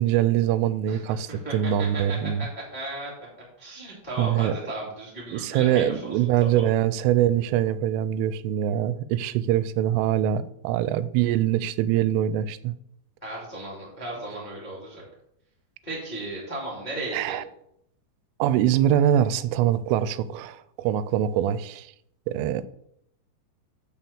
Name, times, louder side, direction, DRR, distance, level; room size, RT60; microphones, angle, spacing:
voice 1, 0.0-2.5 4.2-4.5 5.3-12.7 17.1-17.4 18.4-21.9 22.3-22.7, right 11 dB, 90° right, 15 dB, 3.1 m, -23 dB
voice 2, 1.3-3.1 3.6-6.6 13.2-15.0 15.8-17.3, right 2 dB, 25° left, -5 dB, 1.0 m, -35 dB
6.6 x 5.8 x 6.9 m, 0.74 s
omnidirectional pair, 5.6 m